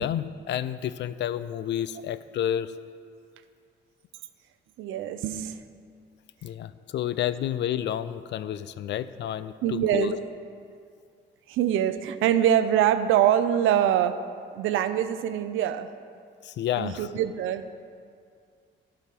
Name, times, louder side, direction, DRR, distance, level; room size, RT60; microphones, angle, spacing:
voice 1, 0.0-2.7 6.4-10.2 16.4-17.1, left 10 dB, 65° left, 14 dB, 0.4 m, -30 dB
voice 2, 4.8-5.6 9.6-10.2 11.5-14.2 14.5-15.9 16.8-17.7, right 10 dB, 85° right, 11 dB, 0.5 m, -24 dB
12.0 x 4.9 x 5.9 m, 2.3 s
cardioid pair, 90°, 20 cm